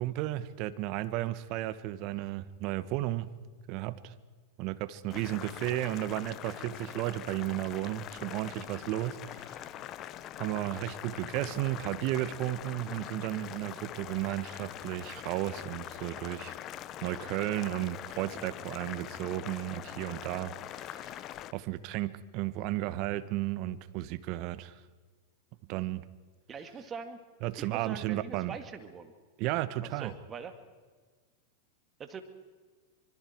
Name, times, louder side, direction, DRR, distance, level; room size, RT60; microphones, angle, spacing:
voice 1, 0.0-3.3 3.7-4.1 4.6-9.6 10.4-16.6 17.0-21.2 21.5-24.8 25.7-26.0 27.4-28.6 29.4-30.1, right 15 dB, 50° right, 1.2 m, -34 dB
Boiling, 5.1-21.5, left 12 dB, 40° left, 1.0 m, -43 dB
voice 2, 26.5-27.2 27.6-29.1 29.8-30.5 32.0-32.2, right 6 dB, 25° right, 2.3 m, -43 dB
25.5 x 24.5 x 4.6 m
hypercardioid pair, 100°, 0 cm